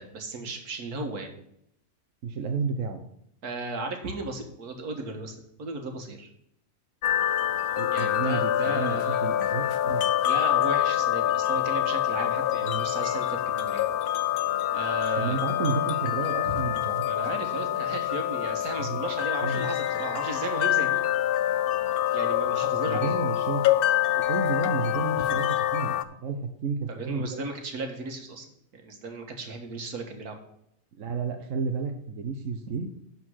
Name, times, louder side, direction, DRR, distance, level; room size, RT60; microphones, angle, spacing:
voice 1, 0.0-1.3 3.4-6.3 7.9-9.4 10.2-13.8 14.7-15.4 17.1-21.0 22.1-23.2 26.9-28.5 28.7-30.4, right 3 dB, 80° right, 4 dB, 1.9 m, -35 dB
voice 2, 2.2-3.0 7.8-10.0 12.6-12.8 15.2-17.0 18.8-19.0 19.4-19.6 22.8-23.6 24.3-25.9 26.2-27.4 31.0-32.9, right 4 dB, 60° right, 5 dB, 1.2 m, -31 dB
sound 1, 7.0-26.0, left 12 dB, 85° left, 0.5 m, -26 dB
11.5 x 4.4 x 6.3 m, 0.74 s
omnidirectional pair, 1.6 m